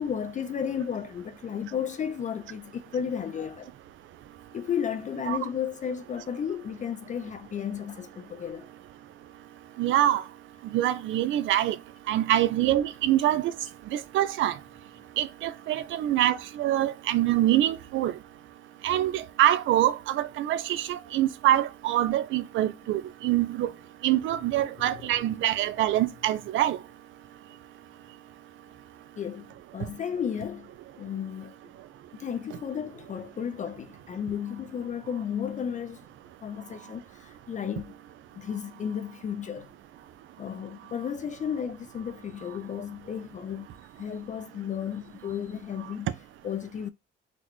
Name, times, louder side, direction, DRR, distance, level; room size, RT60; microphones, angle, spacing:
voice 1, 0.0-3.7 4.5-8.7 23.6-23.7 24.3-25.4 29.2-29.5 29.7-30.7 31.0-31.6 32.2-36.0 36.4-37.9 38.4-39.7 40.4-43.7 44.0-46.9, left 8 dB, 40° left, 0.4 m, -33 dB
voice 2, 9.8-10.2 10.7-11.8 12.1-13.5 13.9-14.6 15.2-18.1 18.8-23.7 24.0-26.8, right 13 dB, 75° right, 0.4 m, -25 dB
4.0 x 2.1 x 2.9 m
cardioid pair, 90°, 20 cm